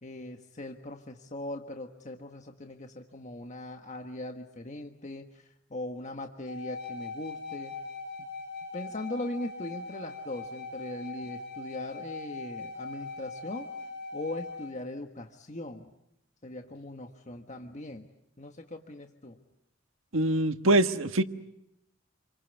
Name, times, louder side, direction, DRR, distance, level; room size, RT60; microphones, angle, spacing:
voice 1, 0.0-7.8 8.2-8.3 8.7-13.7 14.1-15.9 16.4-18.1 18.4-19.4, left 1 dB, 35° left, 4 dB, 1.4 m, -40 dB
sound 1, 6.5-14.7, left 3 dB, 55° left, 7.7 m, -40 dB
voice 2, 20.1-21.2, right 1 dB, 85° right, 9 dB, 1.5 m, -24 dB
29.5 x 24.0 x 8.2 m, 0.84 s
head